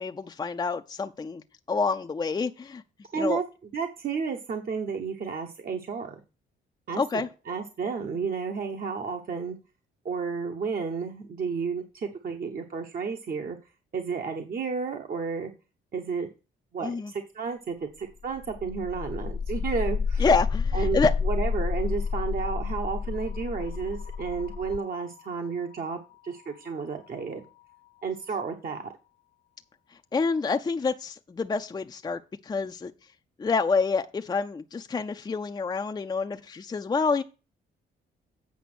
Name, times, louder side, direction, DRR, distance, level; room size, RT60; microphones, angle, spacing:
voice 1, 0.0-2.8 3.2-3.4 7.0-7.3 16.8-17.1 20.2-21.1 30.1-32.9 33.4-37.2, left 4 dB, 20° left, 0.5 m, -27 dB
voice 2, 3.1-6.2 6.9-9.6 10.0-13.6 13.9-15.5 15.9-16.3 16.7-20.3 20.7-27.4 28.0-28.9, right 5 dB, 45° right, 1.0 m, -32 dB
sound 1, 18.2-28.1, left 5 dB, 40° left, 0.9 m, -31 dB
8.4 x 5.2 x 6.0 m
cardioid pair, 90°, 20 cm